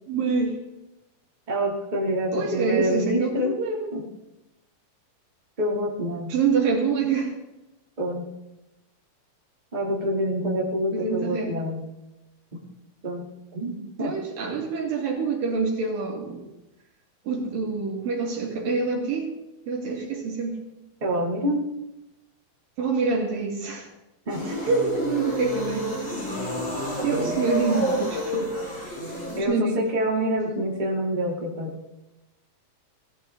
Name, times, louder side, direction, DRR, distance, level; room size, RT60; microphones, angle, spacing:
voice 1, 0.1-0.6 2.3-3.9 6.3-7.3 10.9-11.5 14.0-16.4 17.2-19.3 19.7-20.6 22.8-23.9 24.5-25.9 26.3-26.6 26.8-28.5 29.0-29.8, right 4 dB, 65° right, -1 dB, 4.1 m, -26 dB
voice 2, 1.5-3.5 3.9-4.0 5.6-6.3 8.0-8.3 9.7-11.8 13.0-13.2 13.5-14.1 21.0-21.6 24.3-24.4 29.3-31.7, equal, 15° right, -3 dB, 2.3 m, -26 dB
sound 1, 24.3-29.4, left 1 dB, 30° left, 4.0 m, -29 dB
18.0 x 13.5 x 3.9 m, 0.98 s
omnidirectional pair, 4.3 m